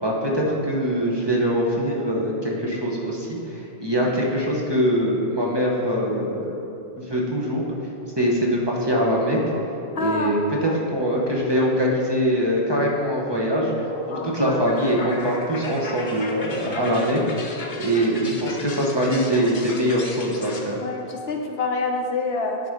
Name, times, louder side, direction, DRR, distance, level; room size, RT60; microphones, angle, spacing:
voice 1, 0.0-6.5 7.0-7.6 8.2-9.4 10.0-17.2 17.8-20.8, equal, 25° right, -3 dB, 1.0 m, -23 dB
voice 2, 9.9-10.3 10.6-10.8 14.1-14.3 20.8-22.6, left 4 dB, 75° left, 3 dB, 1.0 m, -26 dB
sound 1, 13.7-20.6, left 2 dB, 50° left, 1.0 m, -35 dB
9.8 x 4.2 x 5.0 m, 2.7 s
omnidirectional pair, 1.1 m